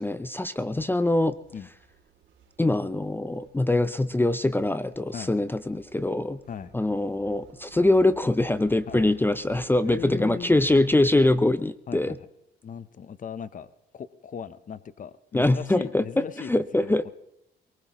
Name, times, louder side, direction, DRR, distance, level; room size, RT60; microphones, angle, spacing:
voice 1, 0.0-1.4 2.6-6.4 6.7-12.2 15.3-17.1, left 2 dB, 10° left, 14 dB, 0.5 m, -23 dB
sound 1, 1.2-11.1, right 6 dB, 75° right, 2.9 m, -53 dB
voice 2, 9.8-10.5 11.9-12.3 12.6-17.0, left 7 dB, 40° left, 15 dB, 0.8 m, -38 dB
22.5 x 19.5 x 3.0 m, 0.84 s
cardioid pair, 90°, 20 cm